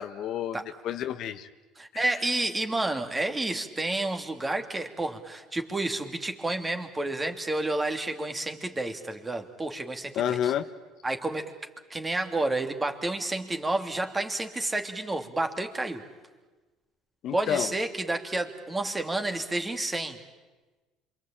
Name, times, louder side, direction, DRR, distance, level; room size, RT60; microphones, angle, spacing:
voice 1, 0.0-1.5 1.9-2.1 10.1-10.6 17.2-17.7, left 10 dB, 60° left, 10 dB, 1.1 m, -30 dB
voice 2, 1.8-10.5 11.0-11.5 11.9-16.0 17.3-20.2, right 2 dB, 20° right, 6 dB, 2.9 m, -30 dB
27.5 x 24.0 x 8.9 m, 1.2 s
hypercardioid pair, 75°, 0 cm